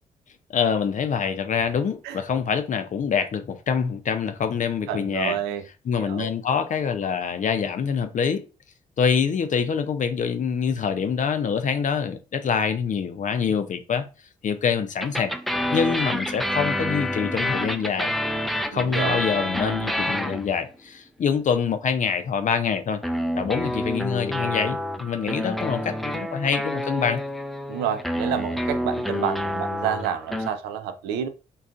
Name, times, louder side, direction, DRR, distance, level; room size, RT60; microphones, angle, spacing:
voice 1, 0.5-5.4 5.8-8.4 9.0-14.0 14.4-15.3 15.7-18.1 18.7-23.0 23.4-27.2, left 6 dB, 50° left, 0.5 m, -25 dB
voice 2, 4.9-5.6 6.0-6.3 18.7-19.2 27.7-31.3, right 9 dB, 85° right, 0.4 m, -29 dB
sound 1, 15.0-20.7 23.0-30.5, left 1 dB, ahead, 0.4 m, -28 dB
2.5 x 2.3 x 3.5 m
hypercardioid pair, 50°, 17 cm